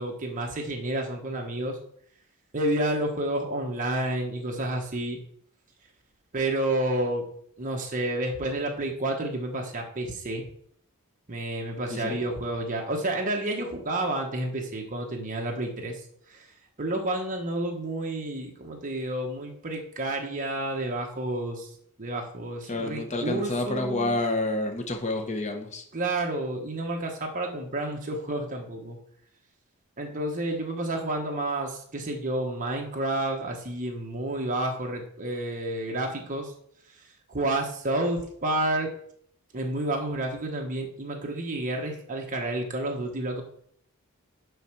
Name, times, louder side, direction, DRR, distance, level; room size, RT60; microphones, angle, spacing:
voice 1, 0.0-1.8 2.5-5.2 6.3-7.2 7.6-10.4 11.3-16.0 16.3-16.5 16.8-21.7 22.0-24.2 25.9-29.0 30.0-36.5 37.3-38.9 39.5-43.4, right 1 dB, 35° right, 1 dB, 1.1 m, -30 dB
voice 2, 22.7-25.8, left 2 dB, 30° left, 4 dB, 1.1 m, -29 dB
6.9 x 4.4 x 6.1 m, 0.64 s
head